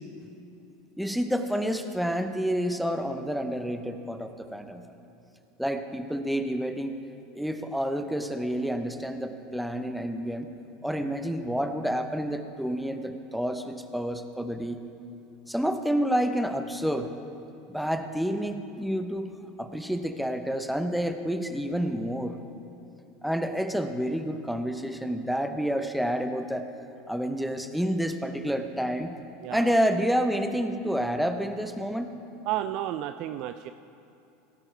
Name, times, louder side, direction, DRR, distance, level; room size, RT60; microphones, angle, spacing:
voice 1, 1.0-4.9 5.6-7.0 7.3-10.5 10.8-14.8 15.5-17.1 17.7-19.3 19.6-22.4 23.2-26.7 27.1-29.2 29.5-32.1, equal, ahead, 8 dB, 0.8 m, -29 dB
voice 2, 29.4-29.7 32.4-33.7, right 13 dB, 55° right, 10 dB, 0.3 m, -32 dB
18.0 x 10.5 x 3.3 m, 2.9 s
figure-of-eight pair, 80°, 0 cm